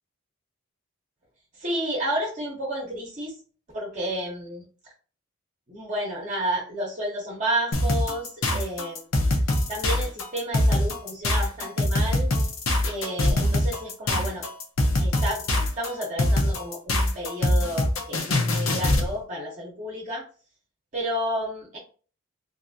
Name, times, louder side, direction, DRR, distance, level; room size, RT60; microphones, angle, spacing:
voice 1, 1.5-3.4 3.7-4.9 5.7-9.1 9.7-12.3 12.8-14.5 15.0-15.4 15.8-20.2 20.9-21.8, right 1 dB, 35° right, -4 dB, 0.8 m, -31 dB
sound 1, 7.7-19.1, left 1 dB, 70° left, 0.7 m, -23 dB
3.3 x 2.7 x 2.6 m, 0.39 s
head